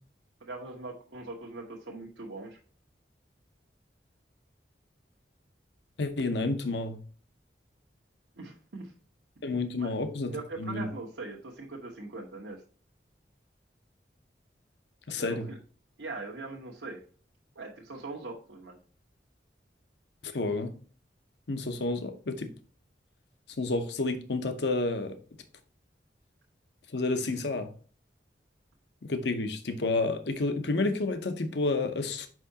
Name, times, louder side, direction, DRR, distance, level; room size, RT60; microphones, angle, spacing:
voice 1, 0.4-2.6 8.4-8.9 9.8-9.9 10.3-12.6 15.2-15.6 16.0-17.0 17.5-18.8, right 3 dB, 85° right, 1.2 m, -41 dB
voice 2, 6.0-7.0 9.4-10.9 15.1-15.5 20.2-20.7 21.5-22.5 23.6-25.2 26.9-27.7 29.0-32.3, left 3 dB, 75° left, 0.8 m, -30 dB
6.0 x 5.6 x 2.8 m
head